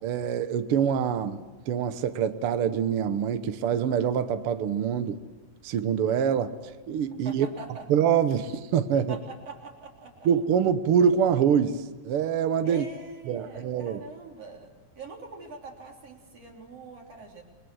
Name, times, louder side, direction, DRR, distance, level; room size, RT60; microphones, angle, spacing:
voice 1, 0.0-5.2 5.6-6.5 6.9-7.5 7.9-9.2 10.2-12.8 13.3-14.0, right 8 dB, 75° right, 10 dB, 1.3 m, -25 dB
voice 2, 7.2-7.9 9.1-10.3 12.6-14.7 15.0-17.4, right 4 dB, 50° right, 0 dB, 4.5 m, -43 dB
29.5 x 21.5 x 6.3 m, 1.2 s
omnidirectional pair, 3.8 m